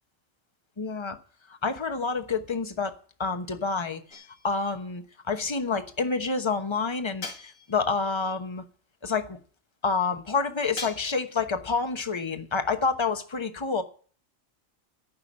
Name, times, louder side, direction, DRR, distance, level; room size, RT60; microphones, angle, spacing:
voice 1, 0.8-1.2 1.6-4.0 4.4-8.6 9.0-9.4 9.8-13.8, left 4 dB, 25° left, 1.0 m, -28 dB
sound 1, 4.1-4.8 7.2-8.0 10.8-11.4, left 3 dB, 80° left, 2.7 m, -40 dB
14.5 x 5.9 x 8.6 m
omnidirectional pair, 1.3 m